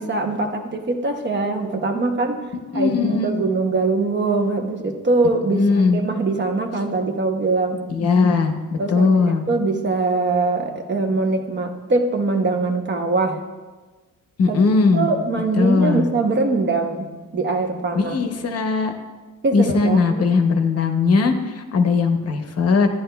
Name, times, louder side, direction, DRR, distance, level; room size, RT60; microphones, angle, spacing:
voice 1, 0.0-2.4 2.7-5.7 5.9-7.8 8.8-13.4 14.5-14.6 14.9-17.1 17.3-18.2 19.4-20.2, right 3 dB, 35° right, 4 dB, 0.8 m, -22 dB
voice 2, 2.7-3.4 5.5-6.0 7.9-8.5 8.9-9.4 14.4-15.1 15.6-16.1 17.9-18.9 19.5-22.9, left 4 dB, 45° left, 6 dB, 0.8 m, -19 dB
12.5 x 10.0 x 2.3 m, 1.3 s
cardioid pair, 165°, 34 cm